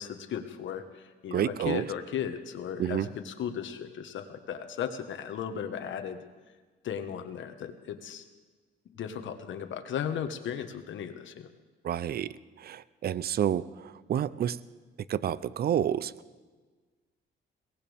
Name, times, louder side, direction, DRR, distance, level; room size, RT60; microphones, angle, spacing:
voice 1, 0.0-6.2 6.8-8.2 8.9-11.5, left 8 dB, 70° left, 7 dB, 1.4 m, -36 dB
voice 2, 1.3-1.9 2.8-3.1 11.8-14.6 15.1-16.1, right 10 dB, 50° right, 18 dB, 0.6 m, -29 dB
22.5 x 18.0 x 3.5 m, 1.4 s
cardioid pair, 90°, 20 cm